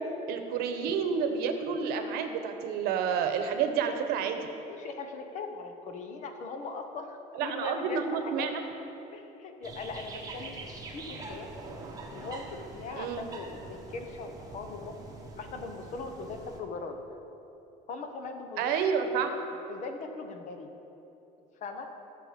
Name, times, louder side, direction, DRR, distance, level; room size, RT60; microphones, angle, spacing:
voice 1, 0.0-4.4 7.3-8.6 13.0-13.2 18.6-19.3, right 6 dB, 65° right, 7 dB, 1.0 m, -29 dB
voice 2, 4.6-8.5 9.1-11.5 12.1-15.0 15.4-17.0 17.9-18.8 19.2-19.4 19.7-20.7 21.6-21.9, left 4 dB, 45° left, 5 dB, 1.1 m, -40 dB
sound 1, 9.6-16.6, right 3 dB, 20° right, 1.0 m, -44 dB
15.5 x 6.7 x 5.2 m, 2.9 s
cardioid pair, 160°, 17 cm